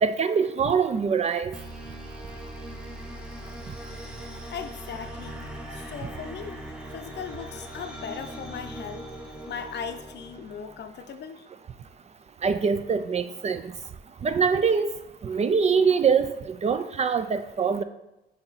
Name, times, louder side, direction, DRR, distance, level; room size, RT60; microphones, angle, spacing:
voice 1, 0.0-1.5 12.4-13.6 14.2-14.9 15.2-17.8, right 6 dB, 35° right, 11 dB, 0.4 m, -23 dB
sound 1, 1.5-11.0, right 1 dB, 5° right, 1.0 m, -40 dB
voice 2, 4.5-5.4 5.7-6.7 6.9-11.5, left 7 dB, 60° left, 8 dB, 0.6 m, -38 dB
8.4 x 2.9 x 4.0 m, 0.95 s
cardioid pair, 90°, 20 cm